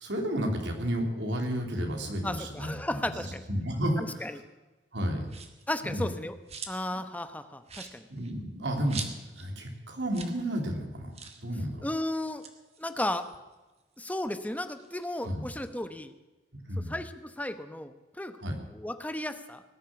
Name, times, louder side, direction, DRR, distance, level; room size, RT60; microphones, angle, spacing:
voice 1, 0.0-4.3 4.9-5.3 5.8-6.1 8.1-11.8 15.2-15.5 16.7-16.9 18.4-18.6, equal, 85° right, 2 dB, 3.2 m, -32 dB
voice 2, 2.2-3.4 4.0-4.4 5.7-6.4 6.7-8.1 11.8-12.4 12.8-13.3 14.0-16.1 16.8-18.4 18.7-19.6, left 1 dB, 10° left, 10 dB, 0.9 m, -34 dB
juicey blood, 5.3-5.7 6.1-7.0 7.3-7.4 7.6-9.5 9.8-9.9 10.1-10.4 10.7-10.8 11.1-11.5 12.2-14.0 14.4-15.8, right 5 dB, 35° right, 1.7 m, -44 dB
19.0 x 7.4 x 9.9 m, 1.1 s
head